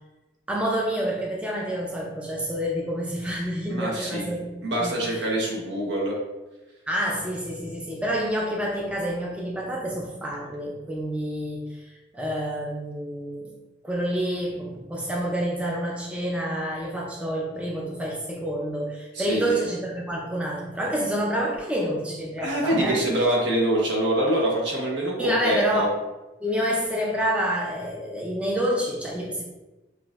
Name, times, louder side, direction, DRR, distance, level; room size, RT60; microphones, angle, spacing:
voice 1, 0.5-5.2 6.9-13.5 13.8-23.0 25.2-25.9 26.4-29.4, equal, 5° right, -2 dB, 0.4 m, -28 dB
voice 2, 3.7-6.2 19.1-19.6 22.4-25.9, right 1 dB, 70° right, -2 dB, 1.0 m, -25 dB
5.7 x 2.5 x 2.4 m, 1.1 s
head